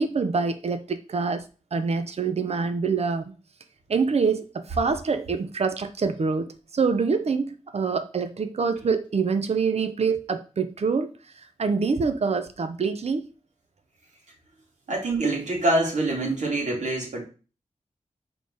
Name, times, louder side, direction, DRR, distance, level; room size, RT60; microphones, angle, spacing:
voice 1, 0.0-1.4 1.7-3.2 3.9-11.1 11.6-13.2, right 5 dB, 60° right, 9 dB, 0.9 m, -25 dB
voice 2, 14.9-17.2, right 2 dB, 75° right, -2 dB, 3.3 m, -25 dB
7.4 x 3.9 x 6.5 m, 0.35 s
wide cardioid pair, 120°, 12 cm